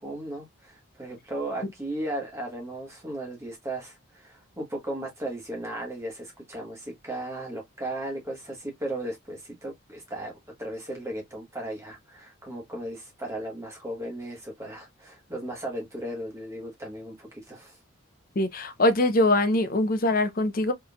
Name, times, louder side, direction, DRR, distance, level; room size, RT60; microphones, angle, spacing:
voice 1, 0.0-10.3 10.6-17.8, right 1 dB, 15° right, 1.2 m, -36 dB
voice 2, 18.4-20.7, left 1 dB, 40° left, 0.6 m, -23 dB
3.6 x 3.2 x 2.3 m
head